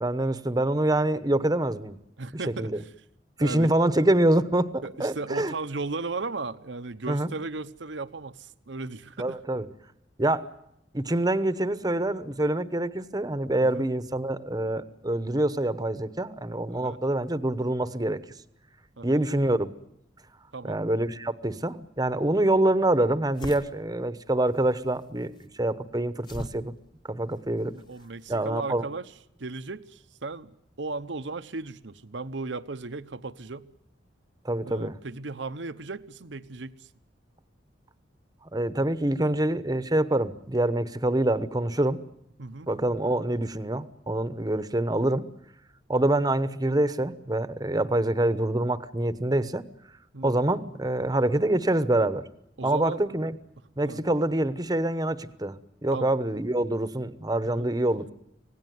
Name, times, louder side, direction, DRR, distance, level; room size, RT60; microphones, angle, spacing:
voice 1, 0.0-2.0 2.6-2.7 3.4-5.5 7.1-7.3 9.2-9.6 10.2-10.5 10.9-18.2 19.0-19.7 20.6-26.7 27.1-27.7 28.3-28.8 34.4-34.9 38.5-42.0 42.7-45.3 45.9-49.6 50.2-52.2 52.6-53.4 53.8-55.6 55.8-58.1, right 1 dB, 20° right, 1.0 m, -25 dB
voice 2, 2.2-2.9 3.4-3.7 4.8-9.4 13.6-13.9 16.7-17.0 19.0-19.2 20.5-20.8 27.7-29.1 29.4-33.7 34.6-36.9 42.4-42.7 50.1-50.4 52.6-53.0 53.8-54.0 55.9-56.1 57.4-57.7, right 3 dB, 75° right, 0.9 m, -36 dB
sound 1, 22.1-28.4, equal, 25° left, 1.3 m, -45 dB
26.0 x 18.0 x 9.4 m
head